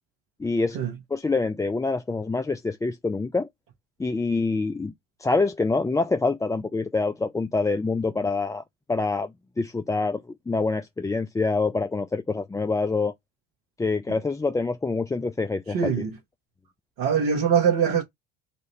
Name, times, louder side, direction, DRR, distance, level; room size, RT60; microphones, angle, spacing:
voice 1, 0.4-0.8 1.1-3.5 4.0-4.9 5.2-13.1 13.8-15.9, left 3 dB, 10° left, 0.4 m, -26 dB
voice 2, 15.7-16.1 17.0-18.0, right 7 dB, 65° right, 1.6 m, -22 dB
3.9 x 2.6 x 3.2 m
hypercardioid pair, 65°, 37 cm